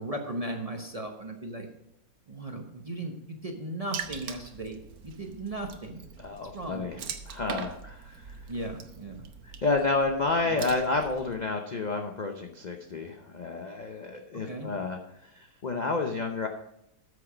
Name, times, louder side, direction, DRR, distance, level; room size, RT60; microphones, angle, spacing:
voice 1, 0.0-1.7 2.3-6.0 6.5-7.1 8.5-9.2 10.4-10.7 14.5-14.7, right 1 dB, 30° right, 3 dB, 0.9 m, -37 dB
Water / Splash splatter, 3.9-11.4, right 6 dB, 65° right, 1.3 m, -42 dB
voice 2, 6.2-7.0 7.3-8.3 9.4-15.0 15.3-16.5, left 3 dB, 45° left, 3 dB, 0.6 m, -30 dB
13.0 x 6.5 x 5.0 m, 0.81 s
omnidirectional pair, 1.7 m